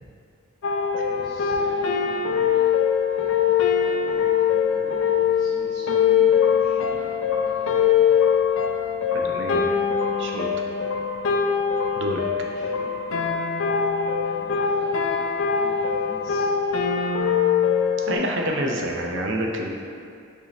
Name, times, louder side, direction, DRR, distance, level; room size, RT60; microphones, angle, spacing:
sound 1, 0.6-18.2, left 7 dB, 70° left, 0.4 m, -22 dB
voice 1, 1.0-2.7 3.1-7.1 7.4-8.2 12.3-13.3 14.2-16.5, equal, 20° left, -15 dB, 1.2 m, -44 dB
voice 2, 9.1-9.6 10.2-10.5 12.0-12.2 18.1-19.7, right 1 dB, 60° right, 0 dB, 0.5 m, -27 dB
4.9 x 2.7 x 3.9 m, 2.4 s
head